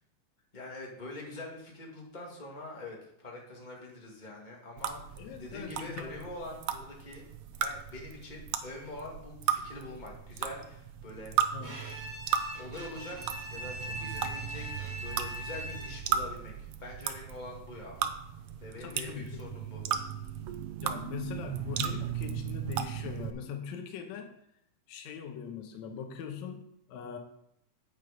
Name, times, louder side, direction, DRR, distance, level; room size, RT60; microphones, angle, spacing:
voice 1, 0.5-7.3 7.6-11.3 12.6-18.0 18.6-19.8, left 2 dB, 15° left, -2 dB, 2.1 m, -44 dB
sound 1, 4.8-23.3, right 9 dB, 90° right, 1.3 m, -36 dB
voice 2, 5.2-6.2 11.5-11.8 18.8-19.5 19.9-20.0 20.8-24.3 24.9-27.2, left 6 dB, 70° left, 4 dB, 2.2 m, -41 dB
Bowed string instrument, 11.6-16.2, equal, 25° right, 2.0 m, -41 dB
9.0 x 7.8 x 5.2 m, 0.74 s
omnidirectional pair, 3.5 m